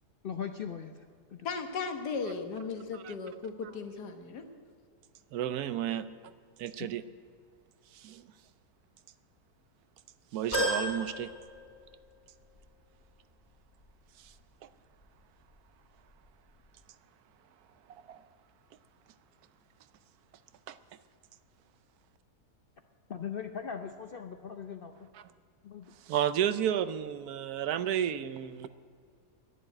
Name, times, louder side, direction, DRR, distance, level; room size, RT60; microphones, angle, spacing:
voice 1, 0.2-1.0 1.3-1.5 6.8-6.9 23.1-25.1 25.6-25.9, left 7 dB, 60° left, 7 dB, 0.6 m, -39 dB
voice 2, 1.4-4.4, left 5 dB, 85° left, 6 dB, 1.8 m, -36 dB
voice 3, 5.3-6.1 6.6-7.0 7.9-8.3 10.3-11.3 14.2-14.3 17.9-18.2 20.7-20.8 25.1-25.3 26.0-28.7, right 10 dB, 75° right, 13 dB, 1.1 m, -32 dB
sound 1, 10.5-12.2 12.6-12.7 13.9-14.0, right 1 dB, 40° left, 4.2 m, -33 dB
11.0 x 10.5 x 9.8 m, 2.2 s
omnidirectional pair, 1.7 m